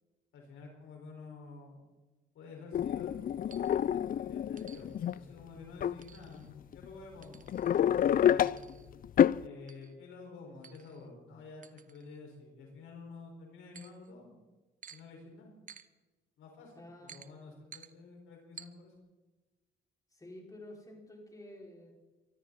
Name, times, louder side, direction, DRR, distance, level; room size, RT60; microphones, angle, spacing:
voice 1, 0.3-1.8 2.3-8.6 9.4-14.4 14.9-15.5 16.4-16.7 17.0-18.9, left 4 dB, 85° left, 0 dB, 5.3 m, -50 dB
sound 1, 2.7-5.2 5.8-6.0 6.7-6.8 7.3-8.7 9.0-9.4, left 10 dB, 45° left, 0.4 m, -28 dB
sound 2, 3.5-3.9 4.6-5.2 6.0-6.5 7.2-7.8 8.5-8.9 9.7-10.0 10.6-11.1 11.6-12.4 13.7-14.1 14.8-15.0 15.7-15.9 17.1-17.3 17.7-17.9 18.6-18.7, right 7 dB, 40° right, 0.9 m, -53 dB
voice 2, 16.7-17.2 20.1-21.9, left 1 dB, 15° left, -1 dB, 5.3 m, -50 dB
24.0 x 13.5 x 4.2 m, 1.2 s
cardioid pair, 90°, 20 cm